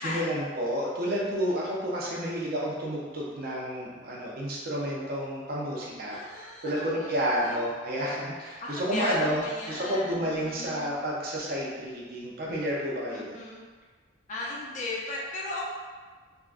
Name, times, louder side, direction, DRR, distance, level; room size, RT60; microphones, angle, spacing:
voice 1, 0.0-13.3, equal, 45° right, -4 dB, 0.5 m, -30 dB
voice 2, 5.9-7.6 8.6-11.0 13.1-13.6 14.3-15.7, left 2 dB, 35° left, -4 dB, 0.4 m, -36 dB
3.5 x 2.2 x 2.4 m, 1.5 s
head